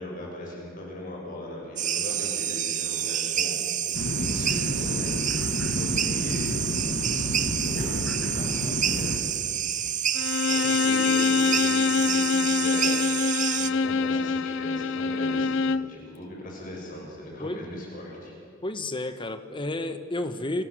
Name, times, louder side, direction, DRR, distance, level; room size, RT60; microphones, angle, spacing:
voice 1, 0.0-3.8 4.1-5.2 5.7-6.7 7.6-8.0 8.3-9.2 10.4-12.9 13.5-18.3, left 1 dB, 45° left, -2 dB, 6.4 m, -38 dB
sound 1, 1.8-13.7, right 10 dB, 40° right, 0.9 m, -28 dB
Norwegian landing, 3.9-9.2, left 1 dB, 90° left, 1.9 m, -31 dB
Bowed string instrument, 10.1-15.9, left 5 dB, 65° left, 0.6 m, -25 dB
voice 2, 18.6-20.6, left 2 dB, 25° left, 9 dB, 1.2 m, -31 dB
28.0 x 26.0 x 6.3 m, 2.4 s
head